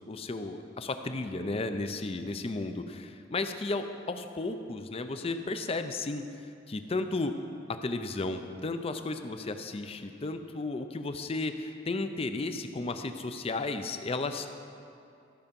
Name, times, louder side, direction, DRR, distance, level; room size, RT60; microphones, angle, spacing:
voice 1, 0.1-6.2 6.7-7.3 7.7-14.5, left 3 dB, 30° left, 8 dB, 0.5 m, -34 dB
13.5 x 5.6 x 5.3 m, 2.5 s
head